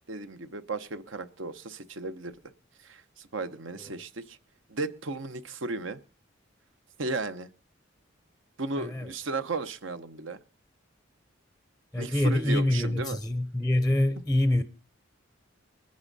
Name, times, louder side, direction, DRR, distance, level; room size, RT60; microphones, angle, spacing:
voice 1, 0.1-2.3 2.8-4.4 4.7-6.0 7.0-7.5 8.6-10.4 12.0-13.2, right 3 dB, 75° right, 0.9 m, -35 dB
voice 2, 8.8-9.1 11.9-14.6, left 1 dB, 5° left, 0.6 m, -25 dB
21.0 x 9.6 x 4.1 m
head